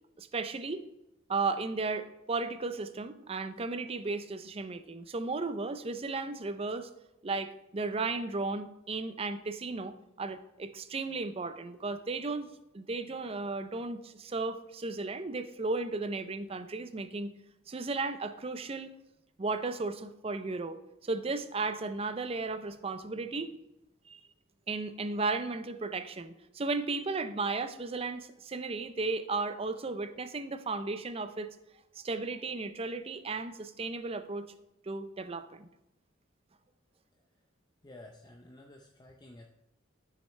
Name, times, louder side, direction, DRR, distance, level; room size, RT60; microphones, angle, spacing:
voice 1, 0.2-0.8 1.3-6.9 7.2-12.5 12.7-17.3 17.7-18.9 19.4-23.5 24.1-24.2 24.7-31.5 32.0-34.5 34.8-35.7, right 3 dB, 30° right, 11 dB, 0.5 m, -35 dB
voice 2, 37.8-39.5, left 1 dB, 20° left, 1 dB, 0.6 m, -52 dB
13.0 x 6.5 x 3.2 m, 0.93 s
head